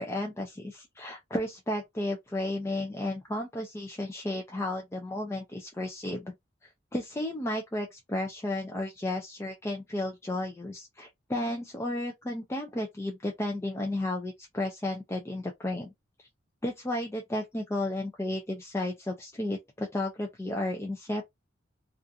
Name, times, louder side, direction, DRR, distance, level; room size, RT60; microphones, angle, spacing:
voice 1, 0.0-6.3 6.9-15.9 16.2-16.3 16.6-21.2, left 1 dB, 15° left, 0.3 m, -33 dB
2.4 x 2.4 x 2.6 m
head